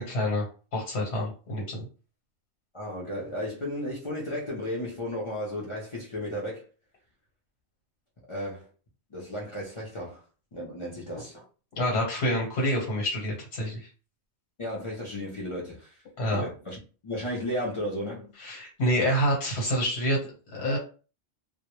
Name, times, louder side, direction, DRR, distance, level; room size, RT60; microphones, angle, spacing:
voice 1, 0.1-0.5 0.7-1.9 11.8-13.9 16.2-16.4 18.4-20.8, equal, 90° left, 1.1 m, -27 dB
voice 2, 2.7-6.6 8.3-8.7 9.1-10.2 10.5-11.4 14.6-16.0 16.3-18.3, left 1 dB, 40° left, 0.4 m, -34 dB
2.1 x 2.0 x 2.9 m
omnidirectional pair, 1.1 m